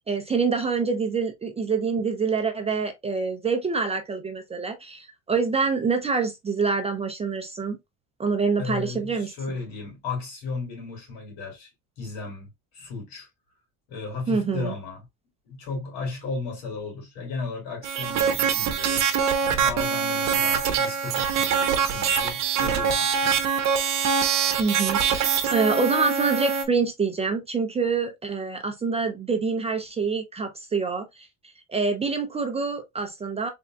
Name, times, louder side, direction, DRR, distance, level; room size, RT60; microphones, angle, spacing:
voice 1, 0.0-7.8 8.2-9.3 14.3-14.7 24.6-31.3 31.7-33.5, right 4 dB, 15° right, 0.4 m, -26 dB
voice 2, 8.6-11.7 12.0-13.3 13.9-15.1 15.5-19.0 19.4-23.4, left 4 dB, 75° left, 2.5 m, -35 dB
sound 1, 17.8-26.6, right 7 dB, 45° right, 0.8 m, -24 dB
4.0 x 3.5 x 2.3 m
cardioid pair, 145°, 37 cm